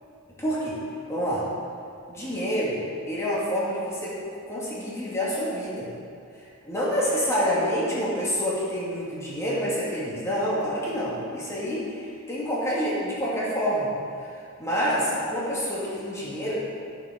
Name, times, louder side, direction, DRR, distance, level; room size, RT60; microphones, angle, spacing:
voice 1, 0.4-0.8 1.1-1.5 2.1-2.8 3.1-4.2 4.5-5.9 6.6-13.9 14.2-14.3 14.6-16.6, equal, 15° left, -8 dB, 2.5 m, -27 dB
13.0 x 7.3 x 5.1 m, 2.4 s
head